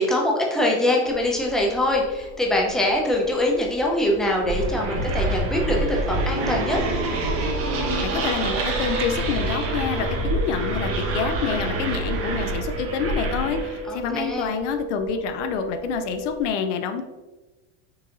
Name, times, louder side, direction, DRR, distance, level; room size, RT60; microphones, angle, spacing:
voice 1, 0.0-6.8 13.8-14.5, left 1 dB, ahead, -1 dB, 0.6 m, -23 dB
sound 1, 1.0-16.5, right 1 dB, 15° right, 1.2 m, -37 dB
sound 2, 4.4-13.8, right 2 dB, 40° right, 1.0 m, -27 dB
sound 3, 6.9-16.4, right 5 dB, 60° right, 0.7 m, -35 dB
voice 2, 8.0-17.0, left 7 dB, 80° left, 7 dB, 0.6 m, -27 dB
5.7 x 2.8 x 2.5 m, 1.2 s
supercardioid pair, 125°, 36 cm